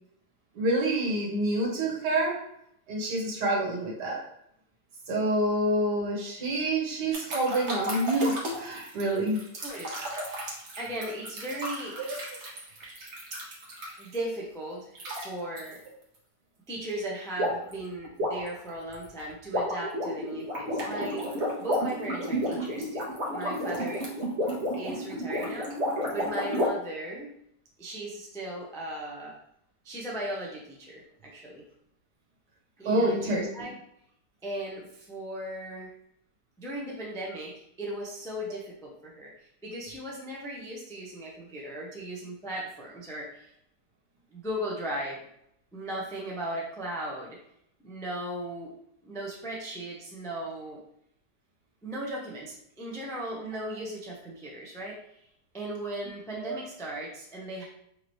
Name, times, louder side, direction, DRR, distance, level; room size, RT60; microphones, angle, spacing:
voice 1, 0.6-2.4 2.9-4.2 5.1-9.4 12.0-12.2 32.9-33.5 56.4-56.6, right 1 dB, 75° right, -3 dB, 1.8 m, -27 dB
sound 1, 7.1-14.2 14.9-15.2 15.6-15.8 17.4-17.7 18.0-26.7, equal, 45° right, 1.3 m, -32 dB
voice 2, 9.6-10.0 10.8-12.0 14.0-15.8 16.7-24.1 24.8-25.7 26.1-27.3 27.8-29.4 29.8-31.6 32.8-33.7 34.4-35.9 36.6-43.5 44.3-45.2 45.7-47.4 47.8-48.7 49.0-50.8 51.8-55.0 55.5-57.6, right 1 dB, 5° left, -4 dB, 0.4 m, -37 dB
4.7 x 2.9 x 3.1 m, 0.74 s
omnidirectional pair, 1.8 m